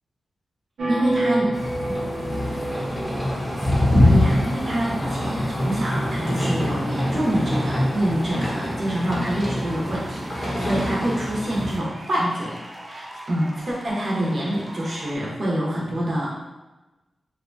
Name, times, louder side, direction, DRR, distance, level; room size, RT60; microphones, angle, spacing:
sound 1, 0.8-4.6, right 1 dB, 85° right, 0.6 m, -28 dB
voice 1, 0.9-1.5 4.0-12.6 12.8-16.3, right 1 dB, 55° right, -4 dB, 0.9 m, -26 dB
sound 2, 1.5-11.8, left 1 dB, 20° left, 0.7 m, -24 dB
sound 3, 6.2-15.2, right 1 dB, 20° right, 0.4 m, -41 dB
2.7 x 2.3 x 2.6 m, 1.1 s
cardioid pair, 55°, 0 cm